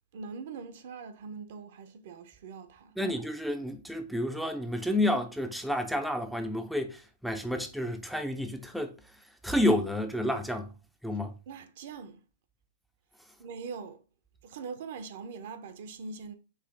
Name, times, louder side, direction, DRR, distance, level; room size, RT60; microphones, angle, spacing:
voice 1, 0.1-3.0 11.5-12.2 13.4-14.0 14.4-16.3, right 5 dB, 60° right, 0.7 m, -42 dB
voice 2, 3.0-9.0 9.4-10.7 11.0-11.3, left 1 dB, ahead, 0.5 m, -30 dB
4.9 x 2.7 x 3.8 m
hypercardioid pair, 125°, 0 cm